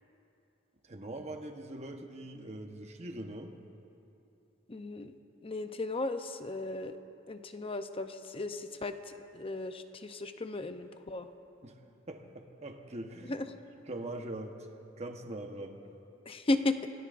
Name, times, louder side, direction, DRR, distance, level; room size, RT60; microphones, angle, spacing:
voice 1, 0.8-3.5 11.6-13.3 13.9-14.7 15.0-15.8, right 1 dB, 35° right, 4 dB, 1.1 m, -42 dB
voice 2, 4.7-5.1 5.4-7.0 7.3-11.3 13.2-13.5 16.3-16.9, left 2 dB, 30° left, 8 dB, 0.7 m, -35 dB
27.5 x 17.0 x 2.6 m, 2.8 s
head